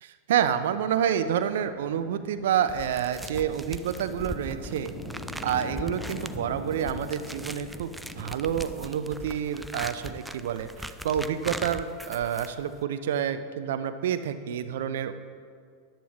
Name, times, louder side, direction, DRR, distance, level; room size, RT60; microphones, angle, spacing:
voice 1, 0.0-4.9 5.4-15.1, right 9 dB, 65° right, 11 dB, 0.5 m, -28 dB
sound 1, 1.0-8.9, left 1 dB, 40° left, 1.8 m, -42 dB
sound 2, 2.7-12.8, right 1 dB, 5° right, 0.5 m, -40 dB
14.0 x 10.5 x 3.1 m, 2.1 s
figure-of-eight pair, 90°, 0 cm